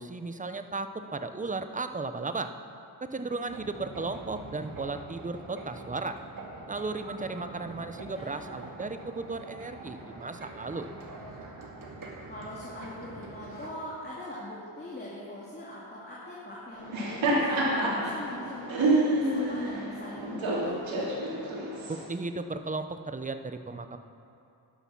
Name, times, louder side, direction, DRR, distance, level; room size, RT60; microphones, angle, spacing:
voice 1, 0.0-2.5 3.0-6.2 6.7-10.9 21.9-24.0, right 3 dB, 15° right, 9 dB, 0.7 m, -35 dB
sound 1, 3.5-13.7, right 2 dB, 45° right, 2.4 m, -44 dB
voice 2, 8.0-8.7 12.3-20.9, left 1 dB, 20° left, -6 dB, 2.6 m, -42 dB
Laughter, 16.7-22.0, right 2 dB, 80° right, 3.5 m, -28 dB
11.5 x 11.5 x 6.0 m, 2.8 s
cardioid pair, 90°, 46 cm